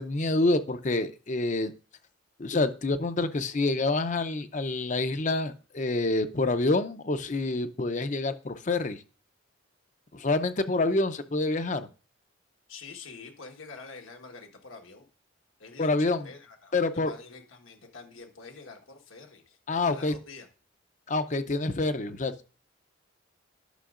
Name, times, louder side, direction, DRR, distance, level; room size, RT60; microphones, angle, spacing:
voice 1, 0.0-1.7 2.4-9.0 10.1-11.9 15.8-16.3 16.7-17.1 19.7-20.1 21.1-22.3, left 2 dB, 35° left, 10 dB, 0.6 m, -27 dB
voice 2, 12.7-15.1 15.6-19.6 19.8-20.5, left 4 dB, 80° left, 4 dB, 1.4 m, -46 dB
11.0 x 6.2 x 2.5 m, 0.35 s
head